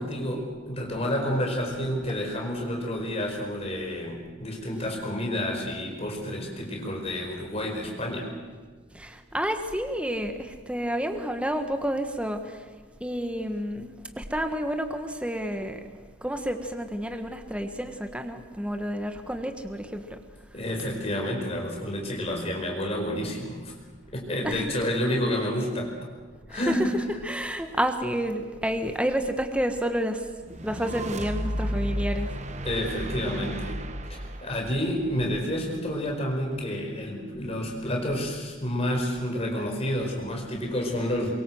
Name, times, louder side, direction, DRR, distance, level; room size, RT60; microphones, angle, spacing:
voice 1, 0.0-8.3 20.5-23.7 24.1-25.9 26.5-27.0 32.6-33.8 34.4-41.3, equal, 30° left, 1 dB, 5.0 m, -29 dB
voice 2, 8.9-12.7 13.0-15.8 16.2-20.2 24.4-24.6 26.5-26.9 27.2-30.3 30.6-32.7, equal, 5° right, 6 dB, 1.3 m, -30 dB
sound 1, 30.5-35.8, right 1 dB, 35° right, 1.1 m, -33 dB
23.5 x 23.0 x 7.8 m, 1.5 s
head